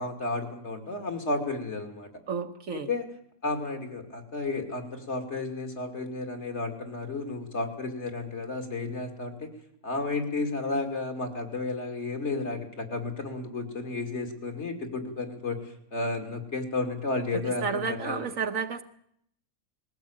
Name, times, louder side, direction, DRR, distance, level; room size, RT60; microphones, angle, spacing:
voice 1, 0.0-2.1 2.7-3.0 3.4-9.5 9.8-15.6 15.9-18.2, left 3 dB, 50° left, 5 dB, 3.0 m, -32 dB
voice 2, 2.3-2.9 17.3-18.8, right 6 dB, 65° right, 7 dB, 1.5 m, -31 dB
20.5 x 16.0 x 8.8 m, 0.70 s
omnidirectional pair, 1.5 m